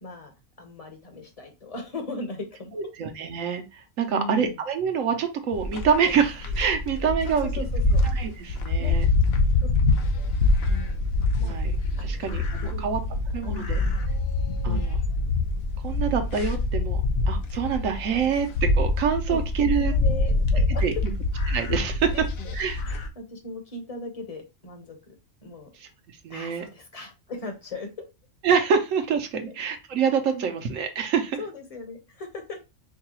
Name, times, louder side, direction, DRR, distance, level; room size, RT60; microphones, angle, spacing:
voice 1, 0.0-0.3 0.6-2.8 4.1-4.6 7.2-8.0 8.8-8.9 9.6-9.7 10.0-10.3 10.7-11.0 11.4-11.6 12.0-12.3 12.6-12.9 13.3-14.1 14.6-14.9 18.3-18.4 19.2-19.4 19.8-20.8 22.1-25.1 25.4-25.7 26.3-27.9 29.4-29.5 30.3-30.5 31.4-32.6, left 3 dB, 30° left, 4 dB, 0.9 m, -38 dB
voice 2, 2.7-7.6 8.1-9.1 11.4-11.7 12.0-13.0 13.3-13.8 14.6-15.0 15.8-17.0 17.3-18.5 18.8-19.9 20.8-20.9 21.5-22.1 22.5-22.8 25.8-25.9 26.2-26.6 28.4-31.4, right 7 dB, 75° right, 6 dB, 1.1 m, -26 dB
sound 1, 5.5-23.1, left 2 dB, 60° left, 0.8 m, -25 dB
4.8 x 2.3 x 2.9 m, 0.26 s
omnidirectional pair, 1.4 m